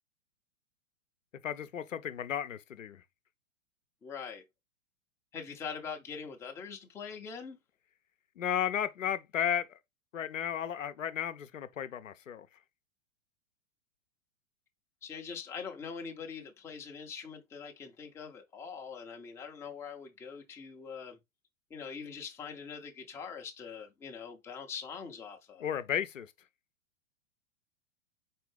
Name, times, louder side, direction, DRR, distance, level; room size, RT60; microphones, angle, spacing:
voice 1, 1.4-3.0 8.4-9.8 10.1-12.5 25.6-26.3, left 9 dB, 75° left, 0.6 m, -34 dB
voice 2, 4.0-4.4 5.3-7.6 15.0-21.2 21.7-25.7, left 6 dB, 5° left, 0.5 m, -43 dB
4.5 x 3.7 x 3.2 m
figure-of-eight pair, 105°, 39 cm